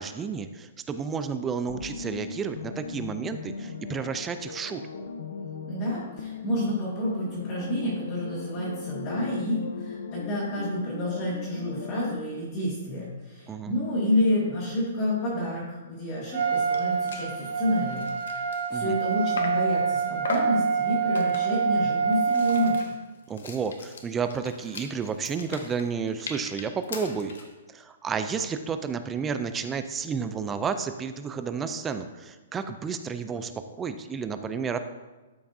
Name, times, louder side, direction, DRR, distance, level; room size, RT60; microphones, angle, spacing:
voice 1, 0.0-4.8 13.5-13.7 18.7-19.0 23.3-27.4 27.7-34.8, right 6 dB, 10° right, 10 dB, 0.3 m, -31 dB
sound 1, 1.7-12.1, left 5 dB, 60° left, 0.7 m, -38 dB
voice 2, 5.6-22.8, left 1 dB, 20° left, -10 dB, 1.9 m, -29 dB
Trumpet, 16.3-22.8, right 6 dB, 55° right, 1.7 m, -26 dB
sound 2, 16.4-16.5 16.7-16.8 17.1-17.3 17.7-19.7 20.2-20.6 21.1-21.6 22.1-27.5, left 2 dB, 85° left, 1.3 m, -38 dB
12.5 x 5.9 x 2.6 m, 1.2 s
hypercardioid pair, 175°, 0 cm